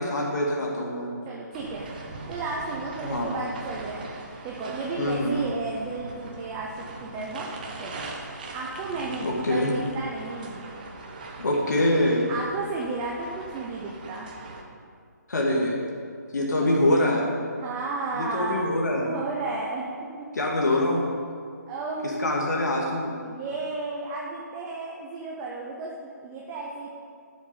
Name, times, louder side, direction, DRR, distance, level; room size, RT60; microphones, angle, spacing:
voice 1, 0.0-1.1 3.0-3.4 5.0-5.4 9.2-9.7 11.4-12.2 15.3-15.8 16.3-17.3 18.1-19.1 20.3-21.1 22.2-23.1, left 1 dB, 70° left, -2 dB, 2.2 m, -24 dB
voice 2, 1.3-2.0 2.3-4.1 4.4-7.5 7.8-8.1 8.5-10.7 12.3-14.3 16.6-16.7 17.6-18.6 19.0-20.1 21.7-22.4 23.2-26.9, right 3 dB, 10° right, -3 dB, 0.5 m, -33 dB
sound 1, 1.5-14.6, right 3 dB, 30° right, 1.0 m, -41 dB
12.5 x 7.1 x 5.4 m, 2.2 s
hypercardioid pair, 170°, 10 cm